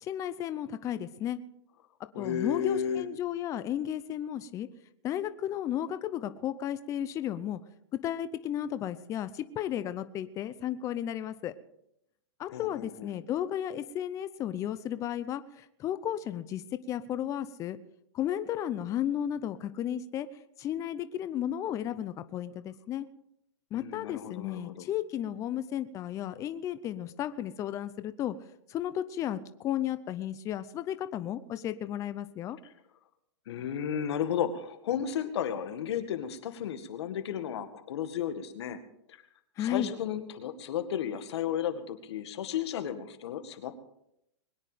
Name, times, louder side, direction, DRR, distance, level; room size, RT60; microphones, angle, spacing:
voice 1, 0.0-1.4 2.2-4.7 5.0-7.6 8.0-11.5 12.4-16.6 16.9-17.8 18.1-20.3 20.6-23.1 23.7-28.3 28.7-32.6 39.6-39.9, left 11 dB, 20° left, 13 dB, 0.6 m, -33 dB
voice 2, 2.1-3.0 12.5-13.1 23.7-24.9 33.5-38.8 39.6-43.7, left 9 dB, 65° left, 9 dB, 1.9 m, -33 dB
21.5 x 9.8 x 5.1 m, 0.78 s
hypercardioid pair, 150°, 15 cm